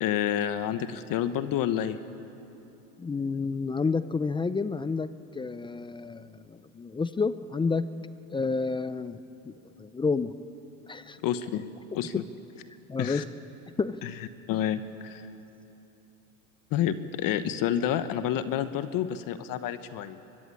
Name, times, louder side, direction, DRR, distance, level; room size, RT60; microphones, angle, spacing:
voice 1, 0.0-2.0 11.2-11.6 11.9-12.2 13.0-13.2 14.0-14.1 14.5-15.3 16.7-20.2, left 10 dB, 45° left, 11 dB, 1.2 m, -29 dB
voice 2, 3.0-7.9 8.3-9.2 9.4-10.3 10.9-11.2 12.9-13.2 13.8-14.0, left 4 dB, 10° left, 14 dB, 0.5 m, -30 dB
23.5 x 22.5 x 9.8 m, 2.9 s
supercardioid pair, 120°, 47 cm